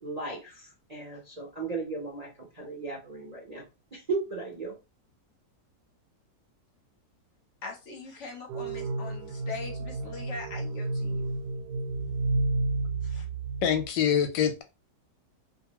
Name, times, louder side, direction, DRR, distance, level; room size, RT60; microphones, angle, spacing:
voice 1, 0.0-3.6 3.9-4.7, right 3 dB, 40° right, 0.5 m, -36 dB
voice 2, 7.6-11.3 13.0-13.2, left 4 dB, 55° left, 0.9 m, -41 dB
sound 1, 8.5-13.9, right 3 dB, 75° right, 1.1 m, -31 dB
voice 3, 13.6-14.6, left 8 dB, 90° left, 1.3 m, -25 dB
2.7 x 2.5 x 2.9 m
omnidirectional pair, 2.0 m